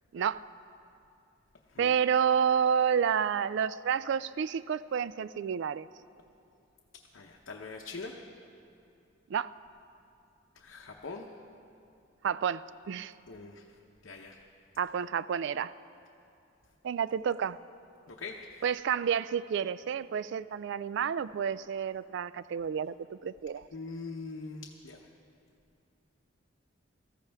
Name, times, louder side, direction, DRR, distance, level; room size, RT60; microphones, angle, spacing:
voice 1, 1.8-5.9 9.3-9.5 12.2-13.1 14.8-15.7 16.8-17.6 18.6-23.6, right 7 dB, 60° right, 16 dB, 0.3 m, -30 dB
voice 2, 7.1-8.1 10.5-11.3 13.3-13.8 14.0-14.4 18.1-18.6 23.7-25.1, left 3 dB, 65° left, 0 dB, 0.8 m, -43 dB
19.0 x 14.5 x 3.5 m, 2.6 s
head